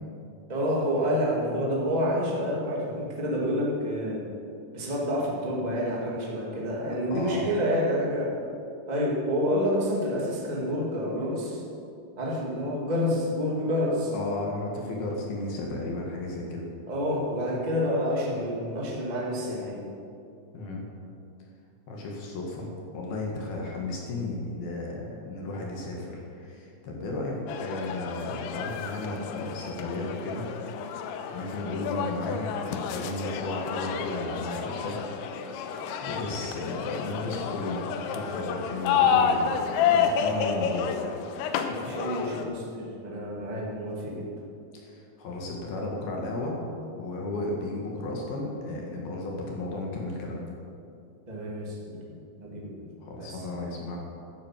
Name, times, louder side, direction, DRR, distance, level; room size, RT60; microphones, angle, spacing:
voice 1, 0.5-4.2 4.7-8.4 8.9-11.6 12.2-14.1 16.9-19.8 41.7-44.3 51.3-52.9 53.2-53.6, equal, 80° right, -3 dB, 0.4 m, -28 dB
voice 2, 7.1-7.4 14.1-16.7 20.5-20.9 21.9-30.5 31.3-35.1 36.0-40.9 44.7-46.6 46.9-50.4 53.0-54.0, left 2 dB, 60° left, -1 dB, 3.4 m, -34 dB
sound 1, 27.5-42.4, left 7 dB, 90° left, 3.2 m, -30 dB
12.5 x 10.0 x 7.6 m, 2.6 s
omnidirectional pair, 5.3 m